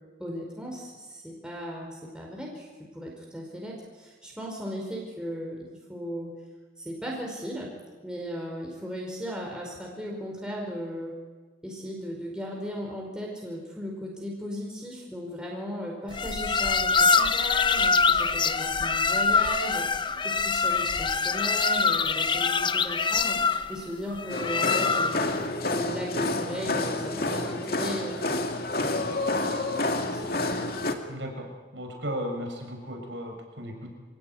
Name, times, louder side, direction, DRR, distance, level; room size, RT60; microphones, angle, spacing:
voice 1, 0.2-2.7 2.9-6.3 6.8-7.7 8.0-11.1 11.6-23.4 23.7-25.3 25.7-28.3 28.7-29.3 30.0-30.7, equal, 5° right, -2 dB, 5.0 m, -36 dB
sound 1, 16.1-25.4, left 5 dB, 25° left, 0.7 m, -24 dB
sound 2, 24.3-30.9, left 2 dB, 55° left, 2.4 m, -29 dB
voice 2, 31.1-31.5 31.7-33.9, equal, 85° right, 3 dB, 7.1 m, -35 dB
28.0 x 17.5 x 9.6 m, 1.4 s
head